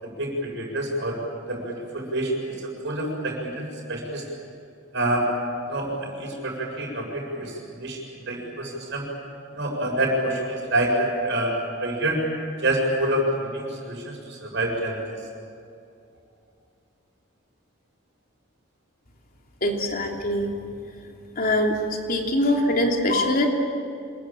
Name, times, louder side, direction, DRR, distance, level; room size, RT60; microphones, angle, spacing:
voice 1, 0.0-1.2 1.5-2.5 2.8-4.2 4.9-5.3 5.7-8.0 8.3-9.1 9.5-11.5 11.8-12.2 12.6-15.2, right 1 dB, 60° right, 0 dB, 7.5 m, -27 dB
voice 2, 19.6-20.5 21.3-21.8 22.1-23.5, left 1 dB, 45° left, 1 dB, 3.2 m, -23 dB
27.0 x 21.5 x 9.0 m, 2.6 s
head